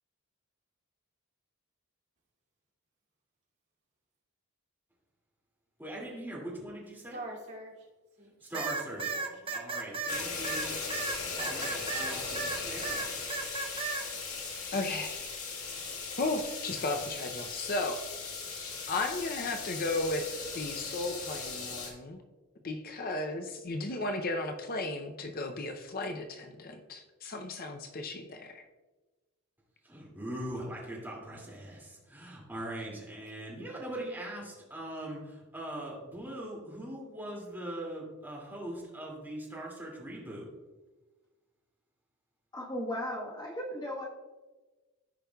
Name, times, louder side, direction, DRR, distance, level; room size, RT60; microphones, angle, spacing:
voice 1, 5.8-7.2 8.5-9.0 9.5-10.7 11.1-13.0 29.9-40.5, right 1 dB, 10° right, -5 dB, 2.3 m, -41 dB
voice 2, 7.1-7.7 8.2-9.5, right 1 dB, 50° right, -6 dB, 2.6 m, -46 dB
sound 1, 8.5-12.6 12.8-14.0, right 4 dB, 25° right, 0.7 m, -34 dB
sound 2, 10.1-21.9, left 4 dB, 70° left, 1.7 m, -38 dB
voice 3, 14.7-15.3 16.2-18.0 18.9-22.2 22.6-28.6, left 2 dB, 40° left, 5 dB, 0.6 m, -35 dB
voice 4, 42.5-44.1, equal, 20° left, -3 dB, 1.3 m, -36 dB
14.5 x 5.2 x 2.3 m, 1.2 s
head